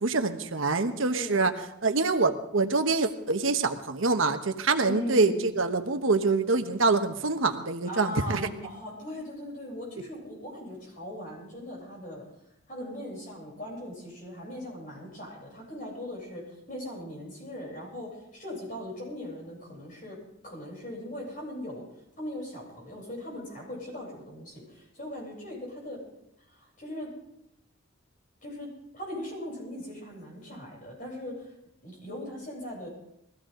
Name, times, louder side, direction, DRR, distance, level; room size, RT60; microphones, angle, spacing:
voice 1, 0.0-1.5 1.8-8.4, right 3 dB, 80° right, 7 dB, 1.1 m, -25 dB
voice 2, 1.1-1.4 4.8-5.4 7.9-12.2 12.7-16.4 16.7-20.2 20.4-21.8 22.2-26.0 26.5-27.1 28.4-28.7 28.9-31.5 31.8-32.9, left 1 dB, 40° left, -3 dB, 7.9 m, -39 dB
21.5 x 15.5 x 3.8 m, 0.79 s
head